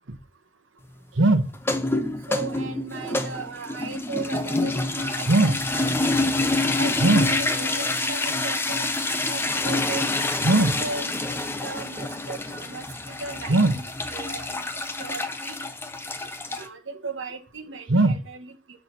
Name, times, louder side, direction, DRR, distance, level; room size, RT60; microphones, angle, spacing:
voice 1, 1.1-1.4 2.3-5.8 6.8-8.9 9.3-10.0 10.4-13.8 14.1-14.6 15.0-15.5 16.5-18.5, right 2 dB, 70° right, 7 dB, 1.2 m, -27 dB
sound 1, 1.5-16.7, left 2 dB, 10° left, 0.6 m, -27 dB
6.7 x 4.2 x 6.1 m, 0.33 s
head